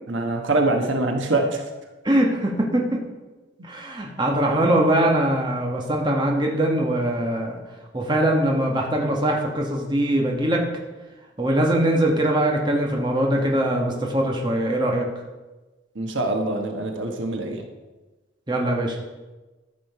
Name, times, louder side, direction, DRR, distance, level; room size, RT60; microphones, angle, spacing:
voice 1, 0.1-1.6 15.9-17.6, right 2 dB, 75° right, 3 dB, 1.3 m, -24 dB
voice 2, 2.0-2.9 3.6-7.6 7.9-10.6 11.4-15.1 18.5-19.0, right 1 dB, 25° right, 0 dB, 1.2 m, -22 dB
13.0 x 6.2 x 4.8 m, 1.2 s
head